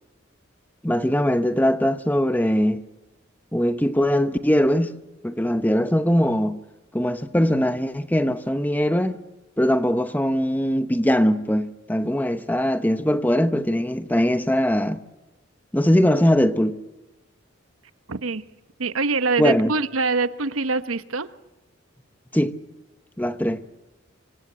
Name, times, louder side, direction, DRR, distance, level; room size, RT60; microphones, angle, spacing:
voice 1, 0.8-2.8 3.5-4.9 5.2-6.6 6.9-9.2 9.6-15.0 15.7-16.8 19.4-19.7 22.3-22.6 23.2-23.6, equal, 10° left, 0.9 m, -21 dB
voice 2, 18.1-18.4 18.8-21.3, right 3 dB, 85° right, 1.1 m, -24 dB
26.0 x 25.5 x 8.0 m
head